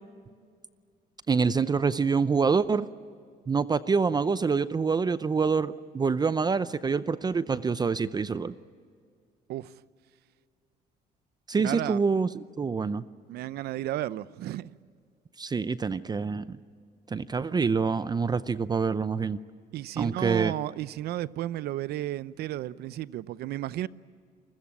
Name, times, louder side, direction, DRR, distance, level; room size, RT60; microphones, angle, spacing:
voice 1, 1.3-2.9 3.5-8.5 11.5-13.0 15.4-16.6 17.1-19.4 20.0-20.5, right 5 dB, 25° right, 0.6 m, -26 dB
voice 2, 11.6-12.0 13.3-14.7 19.7-23.9, right 14 dB, 70° right, 0.7 m, -33 dB
28.5 x 21.0 x 8.8 m
cardioid pair, 110°, 17 cm